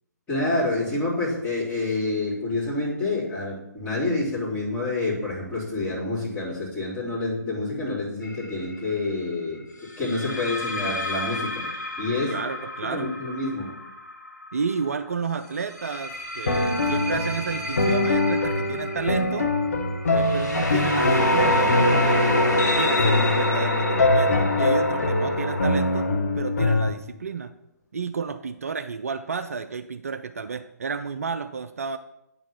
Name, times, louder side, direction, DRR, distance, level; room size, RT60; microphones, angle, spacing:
voice 1, 0.3-9.6 10.0-11.6 12.0-12.3 12.9-13.7, left 2 dB, 15° left, -9 dB, 3.3 m, -27 dB
sound 1, 8.2-8.5 10.0-14.8 15.6-26.1, left 1 dB, 70° left, 1.8 m, -27 dB
voice 2, 12.3-13.1 14.5-19.5 20.1-26.1 26.3-27.5 27.9-32.0, right 5 dB, 55° right, 10 dB, 0.4 m, -31 dB
sound 2, 16.5-26.9, left 2 dB, 55° left, 0.9 m, -24 dB
9.5 x 3.8 x 5.7 m, 0.86 s
figure-of-eight pair, 135°, 10 cm